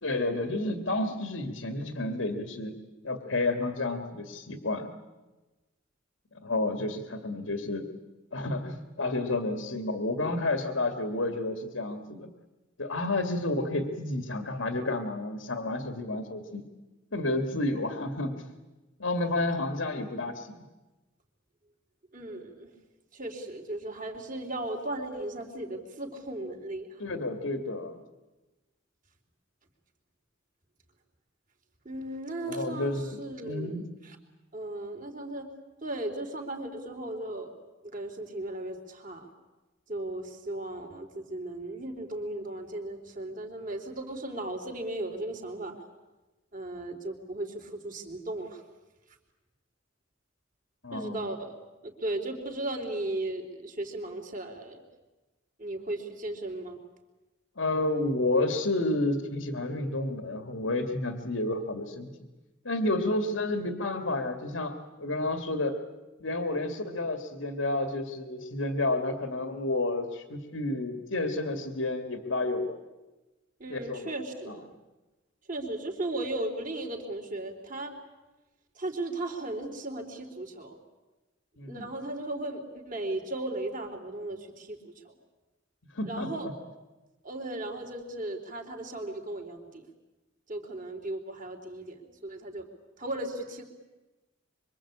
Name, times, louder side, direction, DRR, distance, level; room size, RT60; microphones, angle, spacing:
voice 1, 0.0-2.8 3.0-4.9 6.3-7.9 8.3-12.3 12.8-16.6 17.1-18.5 19.0-20.7 27.0-28.0 32.5-33.8 50.8-51.2 57.6-62.1 62.6-65.8 66.2-72.8 73.7-74.1 74.5-74.6 81.6-81.8 85.9-86.3, left 2 dB, 80° left, 6 dB, 2.2 m, -30 dB
voice 2, 22.1-22.7 23.1-27.0 31.8-34.2 34.5-35.5 35.8-37.5 37.9-39.3 39.9-45.8 46.5-48.6 50.9-51.5 51.8-54.8 55.6-56.8 73.6-74.7 75.5-78.0 78.7-80.8 81.7-85.1 86.1-86.5 87.2-89.9 90.5-92.7 93.0-93.6, right 2 dB, 40° right, 3 dB, 3.8 m, -36 dB
25.5 x 24.5 x 8.7 m, 1.1 s
head